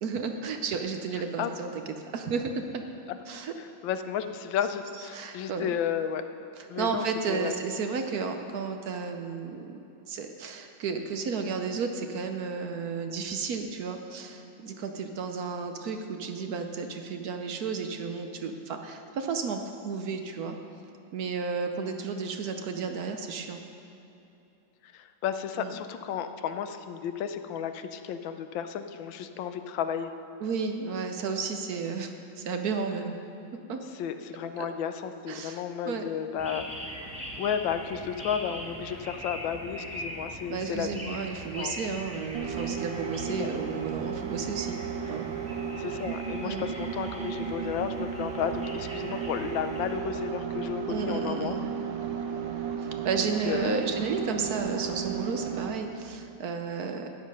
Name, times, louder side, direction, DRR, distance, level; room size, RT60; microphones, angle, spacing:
voice 1, 0.0-2.8 3.3-3.5 5.1-5.8 6.6-9.8 10.1-20.6 21.1-23.6 25.6-25.7 30.4-33.2 33.7-33.8 34.6-34.7 35.3-36.0 40.5-44.8 45.1-45.3 46.4-46.7 50.9-51.7 53.0-57.1, right 5 dB, 65° right, 5 dB, 1.1 m, -33 dB
voice 2, 3.6-6.2 6.7-7.5 24.8-30.1 33.9-36.6 37.4-41.0 41.6-41.9 43.3-43.6 45.8-51.6 53.2-53.8, left 8 dB, 90° left, 9 dB, 1.4 m, -33 dB
sound 1, 36.4-50.0, equal, 5° right, 1.4 m, -42 dB
sound 2, 42.3-55.9, right 8 dB, 90° right, 1.7 m, -34 dB
12.5 x 9.4 x 5.4 m, 2.9 s
omnidirectional pair, 2.0 m